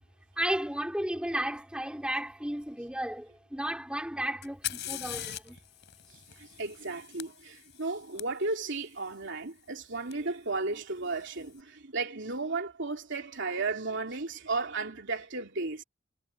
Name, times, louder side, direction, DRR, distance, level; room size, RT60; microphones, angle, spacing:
voice 1, 0.4-5.6, right 1 dB, 5° right, 4.4 m, -33 dB
Fire, 4.4-8.2 10.1-10.2 11.0-11.5, left 12 dB, 60° left, 5.8 m, -41 dB
voice 2, 6.4-15.8, right 3 dB, 65° right, 3.3 m, -34 dB
head